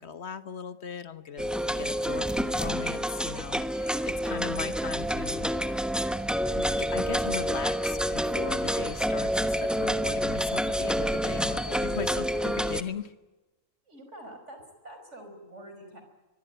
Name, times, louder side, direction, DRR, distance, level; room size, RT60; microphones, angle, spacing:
voice 1, 0.0-5.8 6.5-13.1, left 7 dB, 55° left, 12 dB, 1.5 m, -38 dB
sound 1, 1.4-12.8, equal, ahead, 0.9 m, -28 dB
voice 2, 13.9-16.0, right 1 dB, 60° right, 6 dB, 5.5 m, -46 dB
24.0 x 22.5 x 9.1 m, 1.2 s
omnidirectional pair, 1.3 m